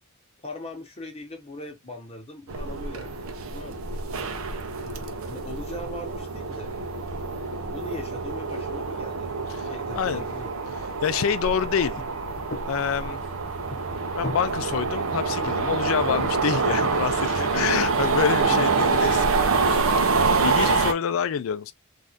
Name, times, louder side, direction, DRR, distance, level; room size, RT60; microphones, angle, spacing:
voice 1, 0.4-3.8 4.1-4.2 4.8-6.7 7.7-10.5, left 1 dB, 30° left, 1.0 m, -40 dB
sound 1, 2.5-20.9, right 4 dB, 70° right, 0.6 m, -26 dB
voice 2, 9.6-10.2 11.0-11.9 12.7-13.2 14.1-19.3 19.6-21.7, left 7 dB, 65° left, 0.3 m, -27 dB
sound 2, 12.0-12.1 12.4-12.7 13.7-14.5 16.2-17.0 17.5-17.9 18.4-19.2 19.9-20.1 20.4-20.7, left 2 dB, 50° left, 0.7 m, -37 dB
3.4 x 2.5 x 2.5 m
head